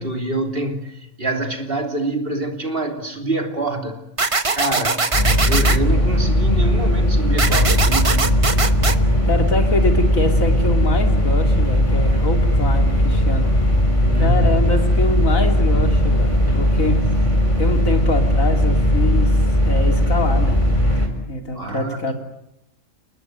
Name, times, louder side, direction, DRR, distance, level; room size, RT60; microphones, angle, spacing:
voice 1, 0.0-4.0 4.5-5.2 5.4-8.3 12.1-12.2 14.1-14.7 21.5-22.1, right 2 dB, 45° right, 4 dB, 3.4 m, -26 dB
sound 1, 4.2-5.8 7.4-9.0, right 4 dB, 25° right, 1.1 m, -21 dB
sound 2, 5.1-21.1, equal, 20° left, 4.2 m, -17 dB
voice 2, 9.2-13.5 14.2-17.1 17.6-19.4 19.6-20.6 21.3-22.1, left 2 dB, 80° left, 5 dB, 3.5 m, -24 dB
30.0 x 19.5 x 9.4 m, 0.85 s
omnidirectional pair, 1.4 m